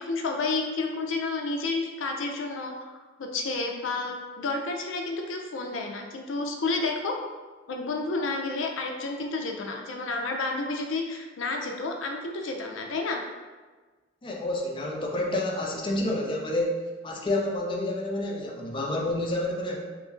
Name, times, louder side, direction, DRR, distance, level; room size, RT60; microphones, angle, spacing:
voice 1, 0.0-7.1 7.7-13.2, left 3 dB, 85° left, 2 dB, 0.4 m, -30 dB
voice 2, 14.2-19.8, left 1 dB, 25° left, -1 dB, 0.4 m, -29 dB
3.0 x 2.4 x 3.7 m, 1.3 s
head